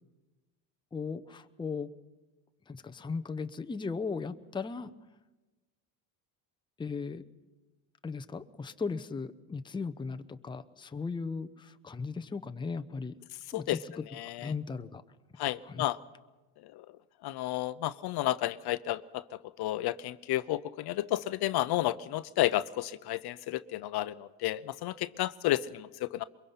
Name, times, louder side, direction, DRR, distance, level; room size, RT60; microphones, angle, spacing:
voice 1, 0.9-1.9 2.7-4.9 6.8-7.2 8.0-13.1 13.5-14.0 14.4-15.0 15.6-15.9, left 4 dB, 10° left, 9 dB, 0.7 m, -37 dB
voice 2, 14.2-14.5 15.4-16.0 17.2-19.0 19.6-26.2, left 15 dB, 60° left, 15 dB, 0.7 m, -31 dB
23.0 x 22.5 x 5.7 m, 1.2 s
cardioid pair, 105°, 45 cm